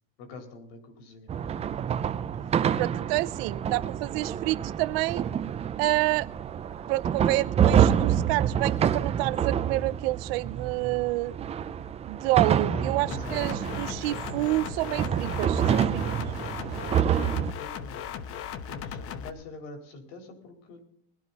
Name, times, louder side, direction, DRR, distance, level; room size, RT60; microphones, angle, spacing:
voice 1, 0.2-1.3 12.7-13.4 16.9-17.2 17.6-18.2 18.7-20.8, left 3 dB, 70° left, 4 dB, 4.0 m, -44 dB
sound 1, 1.3-17.5, right 9 dB, 20° right, 0.5 m, -27 dB
voice 2, 2.8-5.3 5.8-6.3 6.9-11.4 12.1-16.2, right 20 dB, 70° right, 19 dB, 0.7 m, -28 dB
sound 2, 13.1-19.3, left 8 dB, 45° left, 1.1 m, -37 dB
20.0 x 12.0 x 4.1 m, 0.63 s
supercardioid pair, 150°, 32 cm